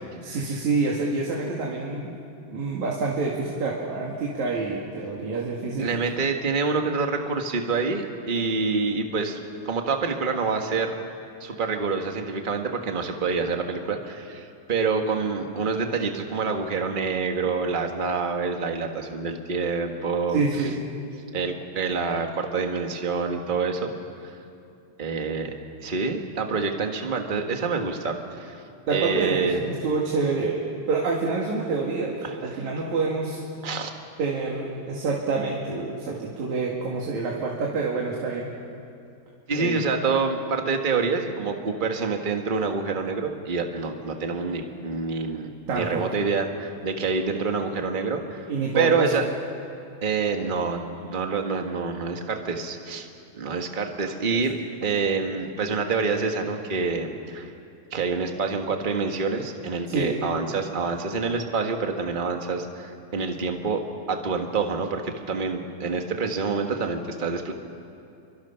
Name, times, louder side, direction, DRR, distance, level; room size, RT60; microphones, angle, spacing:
voice 1, 0.2-2.2 2.5-5.9 20.3-20.7 28.9-30.6 30.9-33.4 34.2-38.5 39.5-39.8 45.7-46.0 48.5-49.1 54.3-54.4 59.9-60.2, right 4 dB, 75° right, -3 dB, 3.6 m, -27 dB
voice 2, 5.8-10.9 11.4-20.4 21.3-23.9 24.2-24.3 25.0-25.5 25.8-28.6 28.9-29.6 32.2-32.7 33.6-33.9 39.5-48.5 48.7-49.2 50.0-53.1 53.3-54.5 54.8-57.5 57.9-63.8 64.1-67.5, right 4 dB, 25° right, 4 dB, 1.1 m, -27 dB
29.5 x 24.0 x 5.8 m, 2.6 s
omnidirectional pair, 3.3 m